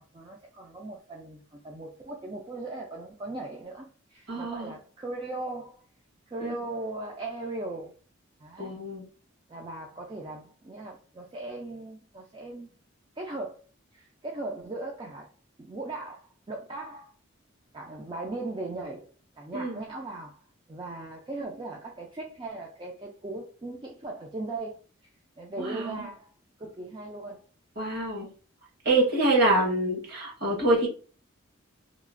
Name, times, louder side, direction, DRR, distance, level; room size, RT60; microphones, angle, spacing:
voice 1, 0.0-5.8 6.3-7.9 8.4-8.7 9.5-12.7 13.2-13.6 13.9-15.3 15.6-16.2 16.5-17.1 17.7-20.4 20.7-24.8 25.4-26.3 26.6-27.4, right 2 dB, 25° right, 0.3 m, -38 dB
voice 2, 4.3-4.7 6.4-6.5 8.6-9.0 19.5-19.8 25.6-26.1 27.8-28.3 28.8-30.9, right 2 dB, 50° right, 1.2 m, -26 dB
3.0 x 2.4 x 2.4 m
head